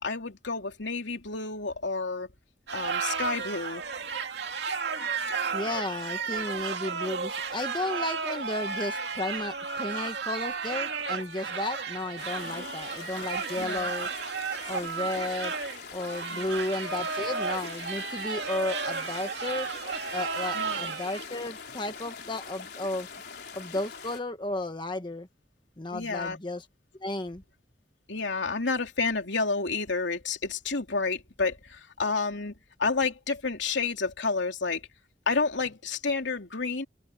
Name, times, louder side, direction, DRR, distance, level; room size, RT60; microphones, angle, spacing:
voice 1, 0.0-2.3 2.7-3.8 12.4-12.7 13.6-13.9 16.3-16.5 20.5-20.9 25.9-26.4 28.1-34.8 35.3-36.9, left 4 dB, 85° left, 3.0 m, -30 dB
sound 1, 2.7-21.2, right 5 dB, 70° right, 2.6 m, -33 dB
voice 2, 5.5-14.1 14.6-15.5 15.9-19.7 20.1-23.1 23.5-25.3 25.8-26.6 27.0-27.4, left 2 dB, 25° left, 1.2 m, -33 dB
sound 2, 12.2-24.2, left 5 dB, 60° left, 4.3 m, -43 dB
head